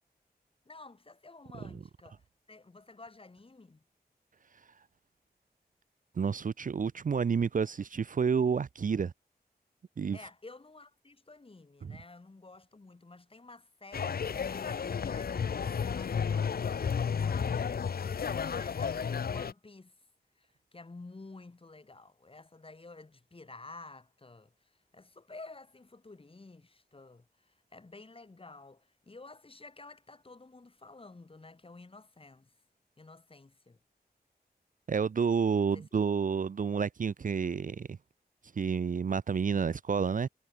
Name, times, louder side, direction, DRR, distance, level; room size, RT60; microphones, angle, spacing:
voice 1, 0.7-3.8 10.1-20.0 20.4-32.5 33.0-33.8 35.7-36.1, left 3 dB, 35° left, 3.6 m, -52 dB
voice 2, 6.2-9.1 10.0-10.2 11.8-12.0 34.9-38.0 38.6-40.3, right 6 dB, 55° right, 0.6 m, -29 dB
sound 1, 13.9-19.5, left 6 dB, 65° left, 0.7 m, -32 dB
wide cardioid pair, 110°, 17 cm